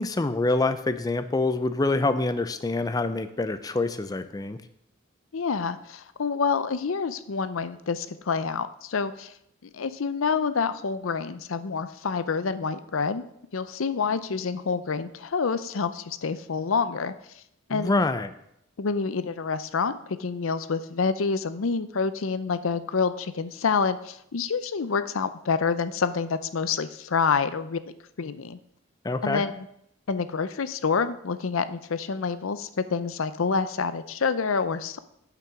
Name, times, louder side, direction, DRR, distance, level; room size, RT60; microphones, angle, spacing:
voice 1, 0.0-4.6 17.7-18.3 29.0-29.4, left 2 dB, 20° left, 11 dB, 0.4 m, -26 dB
voice 2, 5.3-9.3 9.7-13.2 13.5-17.1 17.7-18.0 18.8-27.8 28.2-28.6 29.2-29.7 30.1-35.0, left 5 dB, 75° left, 13 dB, 0.6 m, -27 dB
8.8 x 6.0 x 6.1 m, 0.75 s
head